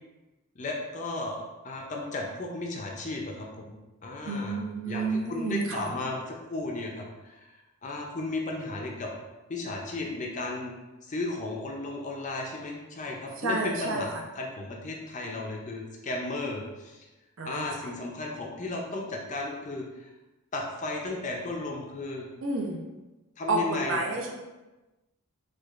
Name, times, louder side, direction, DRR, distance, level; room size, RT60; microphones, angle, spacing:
voice 1, 0.6-3.7 4.0-4.6 4.9-7.5 7.8-9.1 9.5-10.7 11.0-14.1 14.4-17.1 17.4-20.1 20.5-22.3 23.4-24.0, left 2 dB, 35° left, -1 dB, 0.4 m, -34 dB
voice 2, 4.3-5.9 13.4-14.2 17.4-17.9 22.4-22.8 23.5-24.3, right 2 dB, 60° right, 1 dB, 0.5 m, -30 dB
4.6 x 2.4 x 2.4 m, 1.1 s
head